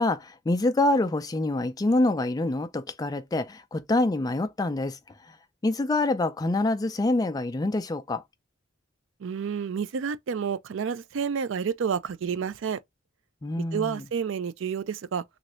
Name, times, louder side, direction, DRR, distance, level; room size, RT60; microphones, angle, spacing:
voice 1, 0.0-5.0 5.6-8.2 13.4-14.0, left 2 dB, 20° left, 0.3 m, -26 dB
voice 2, 9.2-12.8 13.7-15.2, right 6 dB, 65° right, 0.4 m, -29 dB
3.1 x 2.4 x 2.9 m
head